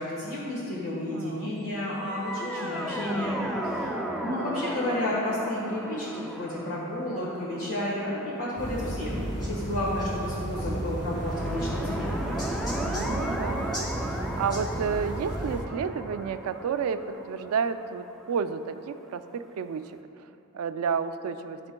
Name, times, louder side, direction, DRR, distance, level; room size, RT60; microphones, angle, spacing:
voice 1, 0.0-3.4 3.7-3.9 4.2-12.1, left 1 dB, 75° left, -7 dB, 1.3 m, -31 dB
voice 2, 1.1-1.5 4.2-4.6 12.8-13.8 14.0-19.9 20.2-20.3 20.5-21.6, right 6 dB, 85° right, 11 dB, 0.3 m, -31 dB
sound 1, 1.9-9.1 11.0-18.8, right 1 dB, ahead, 0.3 m, -36 dB
sound 2, 8.6-15.6, right 1 dB, 20° left, 1.3 m, -33 dB
12.5 x 4.4 x 2.2 m, 2.8 s
head